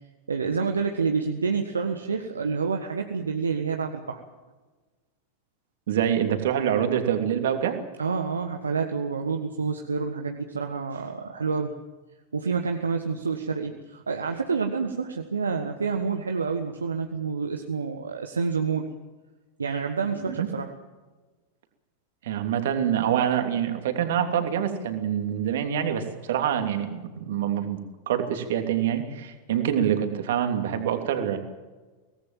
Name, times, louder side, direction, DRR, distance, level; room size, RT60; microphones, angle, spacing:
voice 1, 0.3-4.2 8.0-11.7 12.3-18.9 19.6-20.7, right 5 dB, 75° right, 4 dB, 1.5 m, -28 dB
voice 2, 5.9-7.8 20.1-20.5 22.2-27.8 28.1-31.4, right 9 dB, 55° right, 6 dB, 3.0 m, -26 dB
24.0 x 18.5 x 7.6 m, 1.3 s
figure-of-eight pair, 90°, 0 cm